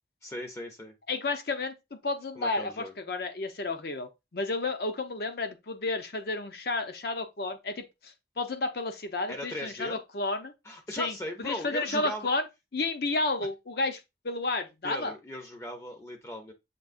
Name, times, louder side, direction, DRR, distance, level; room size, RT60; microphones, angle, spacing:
voice 1, 0.2-0.9 2.4-2.9 9.3-10.0 10.6-12.3 13.4-13.5 14.8-16.5, equal, 15° left, 0.6 m, -38 dB
voice 2, 1.1-10.5 10.9-12.4 12.7-15.1, left 3 dB, 60° left, 0.7 m, -32 dB
6.7 x 2.8 x 2.5 m
head